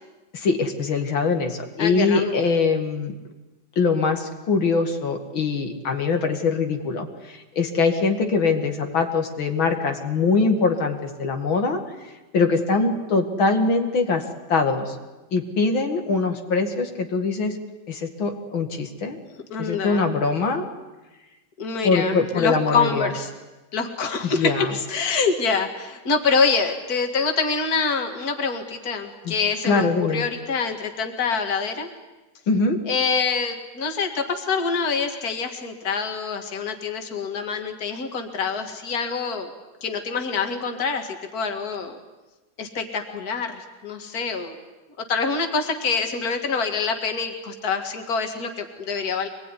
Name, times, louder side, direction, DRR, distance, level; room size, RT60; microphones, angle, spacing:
voice 1, 0.3-3.1 3.8-11.8 12.3-14.2 14.5-15.0 15.3-17.6 17.9-19.2 19.6-20.6 21.8-23.1 24.2-24.7 29.2-29.4 29.6-30.3 32.5-32.8, left 4 dB, 85° left, 4 dB, 2.9 m, -23 dB
voice 2, 1.8-2.4 19.5-20.1 21.6-23.3 23.7-31.9 32.9-39.5 39.8-42.0 42.6-44.6 45.1-49.3, left 5 dB, 50° left, 5 dB, 2.5 m, -25 dB
24.5 x 20.5 x 9.9 m, 1.1 s
omnidirectional pair, 2.1 m